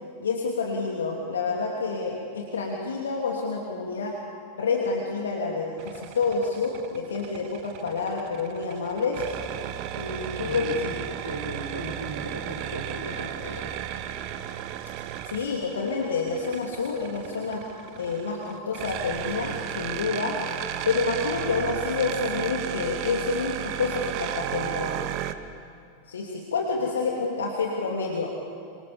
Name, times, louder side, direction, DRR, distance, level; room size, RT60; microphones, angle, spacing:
voice 1, 0.2-4.1 4.6-9.3 9.9-10.9 15.2-17.6 18.0-20.4 20.8-25.0 26.1-28.3, left 4 dB, 65° left, -1 dB, 3.0 m, -28 dB
sound 1, 5.8-25.3, right 11 dB, 45° right, 1.3 m, -34 dB
voice 2, 10.4-13.7 26.7-26.9, right 1 dB, 90° left, 1 dB, 5.1 m, -37 dB
27.0 x 26.5 x 7.2 m, 2.4 s
figure-of-eight pair, 90°, 0 cm